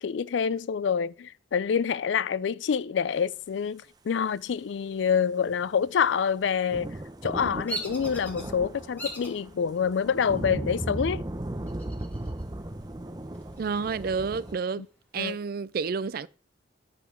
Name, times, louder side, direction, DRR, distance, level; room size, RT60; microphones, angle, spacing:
voice 1, 0.0-11.2 14.8-14.9 15.2-15.4, left 7 dB, 80° left, 0.4 m, -27 dB
sound 1, 5.5-14.5, right 1 dB, 20° right, 0.8 m, -37 dB
Bird vocalization bird call bird song, 7.7-8.4 9.0-9.4 10.0-10.5 11.7-12.4 12.8-12.9 13.3-14.7, right 1 dB, 10° left, 2.2 m, -39 dB
voice 2, 13.6-14.8 15.1-16.3, right 5 dB, 55° right, 0.4 m, -30 dB
11.5 x 4.1 x 7.1 m
head